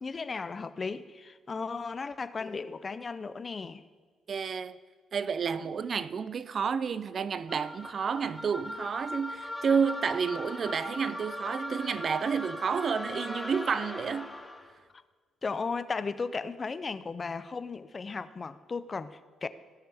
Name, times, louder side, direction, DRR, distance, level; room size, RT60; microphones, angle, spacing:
voice 1, 0.0-3.8 15.4-19.5, left 4 dB, 35° left, 0.5 m, -35 dB
voice 2, 4.3-4.8 5.1-14.4, right 6 dB, 50° right, 0.4 m, -30 dB
sound 1, 7.5-14.7, left 1 dB, 10° left, 1.0 m, -39 dB
17.0 x 6.5 x 3.5 m
cardioid pair, 75°, 0 cm